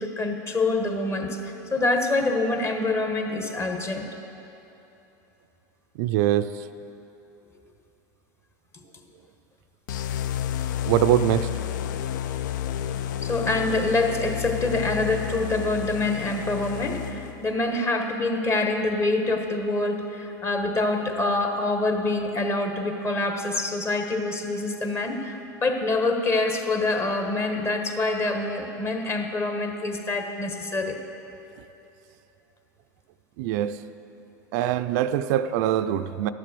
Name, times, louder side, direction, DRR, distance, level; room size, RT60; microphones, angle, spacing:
voice 1, 0.0-4.1 13.2-31.0, left 2 dB, 25° left, 4 dB, 1.3 m, -26 dB
voice 2, 6.0-6.5 10.9-11.5 33.4-33.8 34.5-36.3, right 12 dB, 65° right, 11 dB, 0.4 m, -23 dB
sound 1, 9.9-17.5, left 10 dB, 80° left, 0.4 m, -31 dB
12.0 x 7.6 x 6.8 m, 3.0 s
hypercardioid pair, 110°, 10 cm